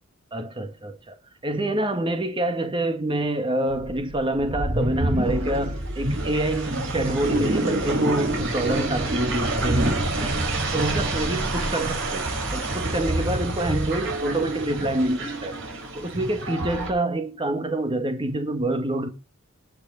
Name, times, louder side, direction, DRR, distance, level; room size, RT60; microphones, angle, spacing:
voice 1, 0.3-1.2 1.4-10.3 10.7-15.5 15.9-19.1, right 1 dB, 25° right, 2.0 m, -26 dB
sound 1, 3.7-16.9, right 1 dB, 65° right, 5.2 m, -27 dB
18.5 x 8.3 x 4.1 m
head